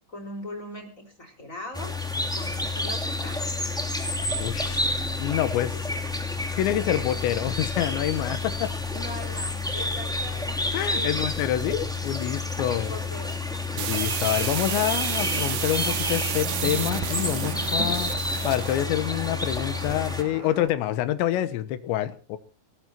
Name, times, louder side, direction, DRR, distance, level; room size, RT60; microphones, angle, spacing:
voice 1, 0.1-3.5 8.9-11.1 12.6-13.8, left 1 dB, 15° left, 5 dB, 5.0 m, -40 dB
sound 1, 1.7-20.2, left 2 dB, ahead, 1.6 m, -29 dB
voice 2, 4.4-4.9 5.2-5.8 6.6-8.7 10.7-13.0 13.7-18.1 18.4-22.4, left 13 dB, 80° left, 12 dB, 3.3 m, -27 dB
sound 2, 13.8-18.9, right 12 dB, 85° right, 1.8 m, -31 dB
sound 3, 14.2-20.7, right 6 dB, 35° right, 2.1 m, -39 dB
25.0 x 19.0 x 3.0 m, 0.37 s
omnidirectional pair, 5.2 m